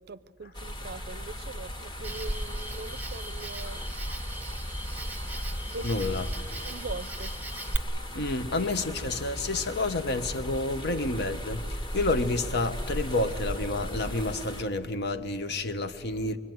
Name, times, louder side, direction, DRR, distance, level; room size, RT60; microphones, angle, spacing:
voice 1, 0.0-3.8 5.6-6.0 6.7-7.3, right 3 dB, 55° right, 0.5 m, -41 dB
sound 1, 0.5-14.6, equal, 25° left, 1.5 m, -36 dB
Cricket, 2.0-7.8, right 1 dB, 10° right, 1.0 m, -39 dB
Ringtone, 2.8-2.9 3.5-3.8 4.1-4.2 4.5-4.7 5.2-5.5 5.8-5.9 6.2-6.4 6.9-7.2 7.5-7.6 7.9-8.1 8.7-8.9 9.2-9.4, left 2 dB, 80° left, 3.4 m, -53 dB
voice 2, 5.8-6.3 8.1-16.4, left 2 dB, 60° left, 1.1 m, -29 dB
25.0 x 22.5 x 9.4 m
head